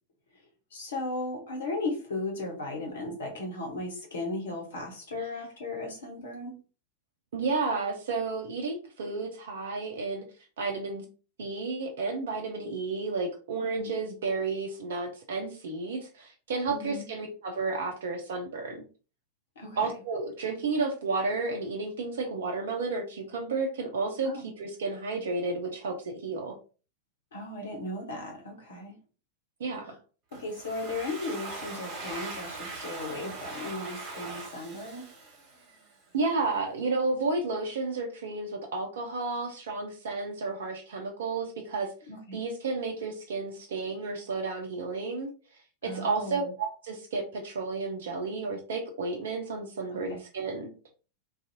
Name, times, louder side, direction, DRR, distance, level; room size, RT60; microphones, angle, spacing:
voice 1, 0.7-6.5 13.6-13.9 16.7-17.0 19.6-19.9 24.2-24.5 27.3-29.0 29.8-30.0 30.4-35.0 42.1-42.4 45.8-46.5 50.0-50.2, left 2 dB, 65° left, 0 dB, 0.9 m, -36 dB
voice 2, 7.3-10.2 10.6-11.0 11.4-18.8 19.8-26.6 29.6-29.9 36.1-41.9 42.3-45.3 45.8-50.7, right 3 dB, 60° right, 2 dB, 0.6 m, -32 dB
Domestic sounds home sounds, 30.3-35.9, right 3 dB, 40° right, 1.3 m, -41 dB
2.6 x 2.3 x 2.7 m, 0.35 s
figure-of-eight pair, 90°, 0 cm